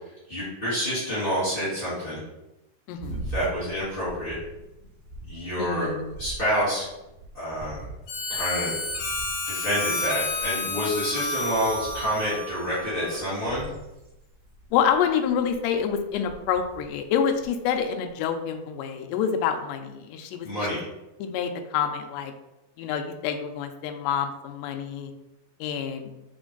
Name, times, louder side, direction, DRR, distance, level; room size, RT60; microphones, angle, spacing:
voice 1, 0.3-2.2 3.1-4.4 5.3-5.9 6.2-6.8 7.3-7.9 8.3-8.7 9.4-13.7 20.4-20.8, equal, 35° left, -12 dB, 0.8 m, -28 dB
voice 2, 2.9-3.2 5.6-6.2 14.7-20.5 21.2-22.3 22.8-25.1 25.6-26.1, left 7 dB, 85° left, 6 dB, 2.7 m, -27 dB
sound 1, 2.9-18.1, right 2 dB, 75° right, 0.9 m, -43 dB
Harmonica, 8.1-13.2, left 2 dB, 70° left, 2.2 m, -31 dB
5.2 x 5.2 x 3.8 m, 0.95 s
omnidirectional pair, 5.1 m